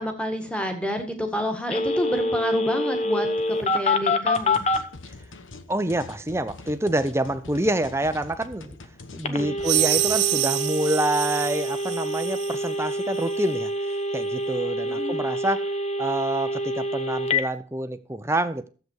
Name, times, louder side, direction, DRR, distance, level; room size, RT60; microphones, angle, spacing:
voice 1, 0.0-4.6 9.3-9.5 14.8-15.3, equal, 5° left, 1.8 m, -29 dB
Telephone, 1.7-4.8 9.2-17.4, left 1 dB, 35° left, 1.0 m, -26 dB
sound 1, 4.3-10.4, left 3 dB, 85° left, 1.1 m, -44 dB
voice 2, 5.7-8.8 9.1-13.7 14.1-15.7 16.0-18.7, right 1 dB, 15° right, 0.7 m, -27 dB
sound 2, 9.6-12.6, right 16 dB, 60° right, 0.4 m, -26 dB
13.5 x 8.0 x 4.7 m
head